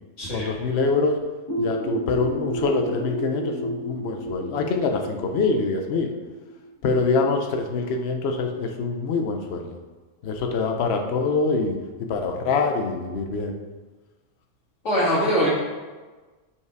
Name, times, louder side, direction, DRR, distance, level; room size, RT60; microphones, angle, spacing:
voice 1, 0.3-1.2 1.6-6.1 6.8-9.7 10.2-11.8 12.1-13.5, left 4 dB, 65° left, 4 dB, 1.0 m, -24 dB
sound 1, 1.5-7.0, right 2 dB, 20° left, 2.3 m, -32 dB
voice 2, 14.8-15.5, equal, 80° left, -6 dB, 2.4 m, -22 dB
5.8 x 4.8 x 4.6 m, 1.3 s
omnidirectional pair, 1.2 m